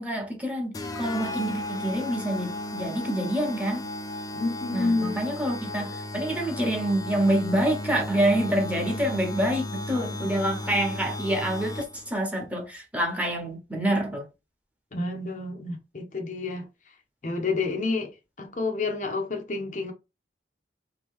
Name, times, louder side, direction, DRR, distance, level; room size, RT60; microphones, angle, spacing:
voice 1, 0.0-3.8 4.7-14.3, right 1 dB, 5° right, 1.0 m, -27 dB
sound 1, 0.7-12.1, left 1 dB, 20° left, 0.4 m, -35 dB
voice 2, 4.3-5.4 10.2-10.3 14.9-17.0 17.2-19.9, left 3 dB, 45° left, 0.7 m, -30 dB
3.5 x 2.9 x 3.6 m
head